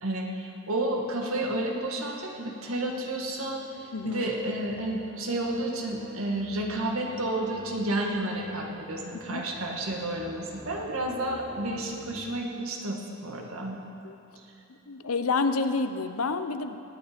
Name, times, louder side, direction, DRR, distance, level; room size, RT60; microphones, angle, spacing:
voice 1, 0.0-13.8, right 1 dB, 75° right, 0 dB, 1.7 m, -31 dB
sound 1, 2.1-12.2, right 1 dB, 60° right, 1.8 m, -50 dB
voice 2, 3.9-4.2 9.3-9.4 14.0-14.1 14.9-16.8, left 4 dB, 80° left, 9 dB, 0.7 m, -28 dB
18.5 x 8.9 x 5.1 m, 2.7 s
head